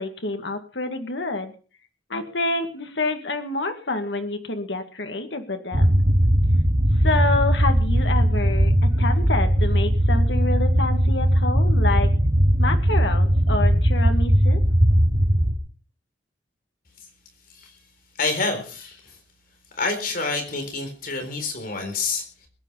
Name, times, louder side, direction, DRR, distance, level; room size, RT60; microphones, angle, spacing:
voice 1, 0.0-1.5 2.1-6.0 7.0-8.7 9.0-12.1 12.6-14.6, left 2 dB, 85° left, 6 dB, 1.9 m, -27 dB
sound 1, 5.7-15.5, equal, 55° right, 5.0 m, -19 dB
voice 2, 18.2-19.2 19.7-22.5, left 3 dB, 55° left, 5 dB, 4.2 m, -28 dB
21.0 x 9.8 x 5.6 m, 0.39 s
head